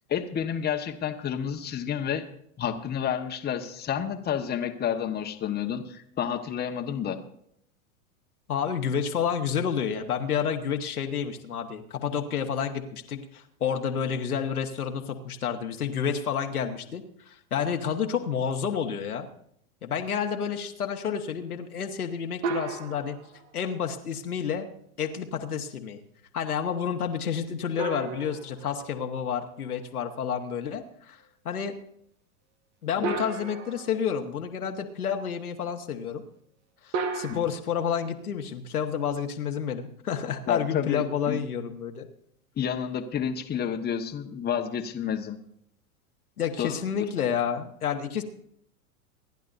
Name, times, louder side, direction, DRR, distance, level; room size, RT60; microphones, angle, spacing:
voice 1, 0.1-2.3 2.6-7.2 33.0-33.2 37.3-37.4 40.5-41.4 42.6-45.4 46.6-47.1, left 8 dB, 20° left, 4 dB, 1.3 m, -30 dB
voice 2, 8.5-19.3 19.8-23.2 23.5-24.7 25.0-26.0 26.3-31.2 31.4-31.7 32.8-36.2 36.8-42.1 46.4-48.2, left 7 dB, 85° left, 3 dB, 1.6 m, -30 dB
sound 1, 22.4-23.5 27.8-29.3 33.0-34.2 36.9-37.4, right 4 dB, 50° right, 1.7 m, -33 dB
27.0 x 11.0 x 2.7 m, 0.70 s
hypercardioid pair, 100°, 43 cm